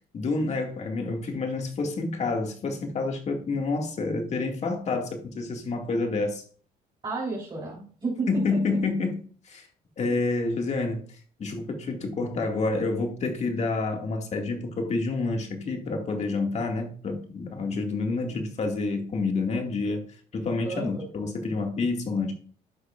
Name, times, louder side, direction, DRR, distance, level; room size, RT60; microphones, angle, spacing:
voice 1, 0.1-6.4 8.3-9.7 10.0-11.0 11.4-20.0 20.3-22.3, left 3 dB, 40° left, 2.2 m, -28 dB
voice 2, 7.0-8.6 10.1-10.2 20.6-21.1, right 3 dB, 30° right, 3.8 m, -32 dB
11.5 x 8.0 x 2.5 m
cardioid pair, 110°, 17 cm